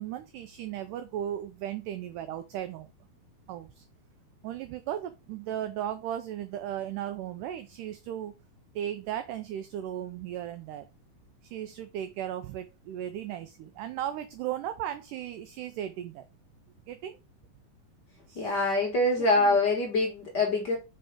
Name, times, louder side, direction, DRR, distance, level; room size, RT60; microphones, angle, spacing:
voice 1, 0.0-2.9 3.5-3.9 4.4-8.3 8.8-10.9 11.4-16.3 16.9-17.2 18.3-18.6 19.2-19.6, right 11 dB, 85° right, 1.8 m, -36 dB
voice 2, 18.3-20.7, left 2 dB, 55° left, 1.1 m, -25 dB
5.4 x 5.2 x 3.6 m
omnidirectional pair, 4.3 m